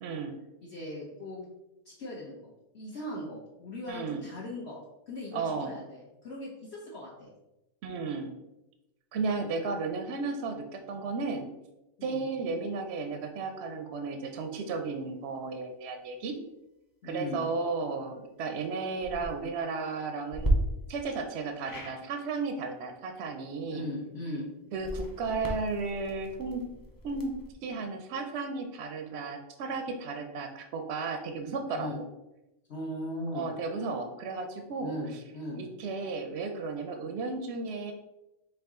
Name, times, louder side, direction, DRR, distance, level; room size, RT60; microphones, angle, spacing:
voice 1, 0.0-0.4 3.9-4.2 5.3-5.7 7.8-8.3 9.1-11.5 12.0-16.4 17.0-20.6 20.9-23.9 24.7-26.6 27.0-27.4 27.6-31.9 33.3-35.0 35.6-37.9, right 4 dB, 65° right, 5 dB, 0.7 m, -34 dB
voice 2, 0.6-1.5 1.8-4.8 5.1-7.3 12.0-12.3 17.0-17.5 23.5-24.4 31.7-32.0 32.7-33.5 34.8-35.6, left 1 dB, 55° left, -5 dB, 1.1 m, -39 dB
sound 1, 18.9-19.3 20.3-20.5 21.6-22.0 24.7-27.5, right 1 dB, 25° left, 0.4 m, -34 dB
4.7 x 3.1 x 3.6 m, 0.93 s
omnidirectional pair, 1.4 m